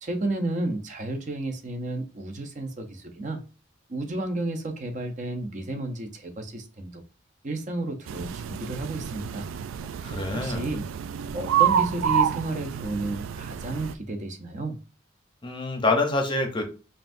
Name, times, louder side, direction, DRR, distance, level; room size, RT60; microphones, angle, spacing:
voice 1, 0.0-3.4 3.9-7.0 7.4-9.5 10.0-10.9 11.3-14.8, right 2 dB, 40° right, 5 dB, 0.7 m, -32 dB
sound 1, 8.1-13.9, right 9 dB, 85° right, 0.3 m, -28 dB
voice 2, 10.0-10.7 15.4-16.7, left 2 dB, 25° left, 3 dB, 0.7 m, -26 dB
5.5 x 2.6 x 2.6 m, 0.34 s
head